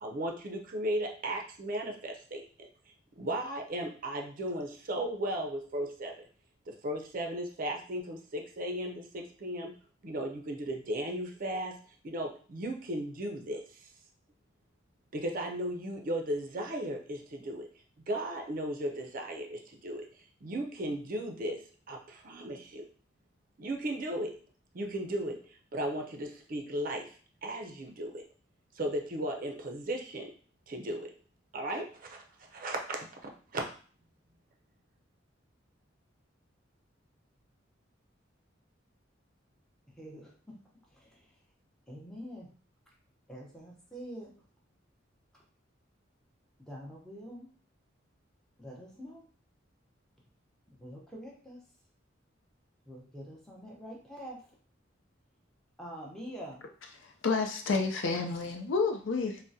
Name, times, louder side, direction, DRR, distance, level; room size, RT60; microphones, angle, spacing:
voice 1, 0.0-2.7 3.2-6.1 6.7-9.7 10.0-11.8 12.0-13.9 15.1-17.7 18.1-20.1 20.4-21.6 21.9-22.9 23.6-24.4 24.7-27.2 27.4-28.2 28.8-30.3 30.7-31.1 31.5-33.7, right 1 dB, 45° right, 2 dB, 0.5 m, -36 dB
voice 2, 40.0-40.5 40.9-41.4 41.9-42.5 43.3-44.3 46.6-47.5 48.6-49.2 50.7-51.6 52.9-54.5 55.8-56.6, equal, 5° left, -3 dB, 0.7 m, -45 dB
voice 3, 57.2-59.4, left 4 dB, 80° left, 4 dB, 0.5 m, -29 dB
3.5 x 2.1 x 2.7 m, 0.43 s
head